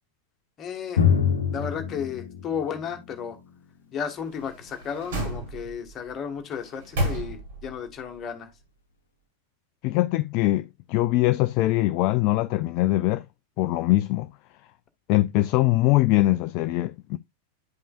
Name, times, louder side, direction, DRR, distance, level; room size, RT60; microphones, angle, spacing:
voice 1, 0.6-1.0 1.5-3.4 3.9-8.5, left 7 dB, 25° left, 1.5 m, -33 dB
Drum, 1.0-4.5, left 7 dB, 65° left, 0.9 m, -26 dB
sound 1, 4.2-5.9 6.5-7.8 8.1-8.2, right 1 dB, 55° right, 4.2 m, -32 dB
voice 2, 9.8-13.2 13.6-14.3 15.1-17.2, left 17 dB, 40° left, 0.4 m, -22 dB
10.5 x 5.3 x 2.3 m
figure-of-eight pair, 90°, 0 cm